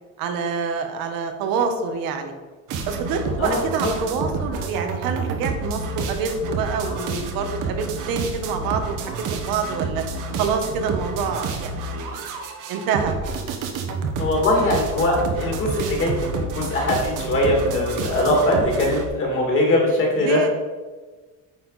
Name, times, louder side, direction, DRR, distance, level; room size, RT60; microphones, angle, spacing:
voice 1, 0.2-2.3 2.9-10.0 10.4-12.3 12.7-13.1 20.2-20.5, right 5 dB, 85° right, 6 dB, 1.2 m, -26 dB
sound 1, 2.7-19.1, right 4 dB, 65° right, 1.2 m, -29 dB
voice 2, 3.4-3.9 14.2-20.5, left 1 dB, 35° left, -1 dB, 2.4 m, -21 dB
9.4 x 5.8 x 4.1 m, 1.3 s
cardioid pair, 180°, 34 cm